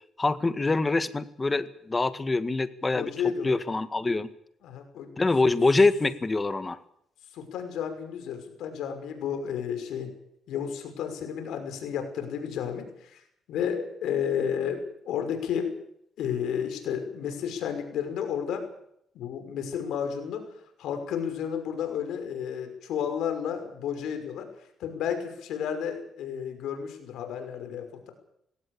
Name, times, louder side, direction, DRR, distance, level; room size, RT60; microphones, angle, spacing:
voice 1, 0.2-3.1 3.4-4.3 5.2-6.8, left 3 dB, 25° left, 11 dB, 1.8 m, -25 dB
voice 2, 2.9-3.6 4.6-5.1 5.4-5.5 7.3-10.1 10.5-15.7 16.2-18.6 19.1-28.1, left 8 dB, 80° left, 7 dB, 5.8 m, -32 dB
20.0 x 17.5 x 8.7 m, 0.73 s
cardioid pair, 90°, 0 cm